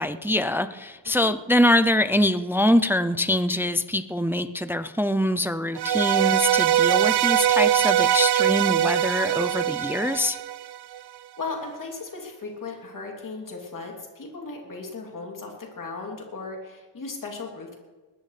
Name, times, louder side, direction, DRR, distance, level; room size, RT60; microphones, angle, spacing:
voice 1, 0.0-10.4, left 1 dB, 5° right, 12 dB, 0.4 m, -24 dB
sound 1, 5.8-11.0, right 11 dB, 65° right, 0.5 m, -22 dB
voice 2, 11.4-17.7, left 3 dB, 50° left, 0 dB, 3.0 m, -36 dB
21.0 x 19.5 x 3.3 m, 1.3 s
wide cardioid pair, 160°, 42 cm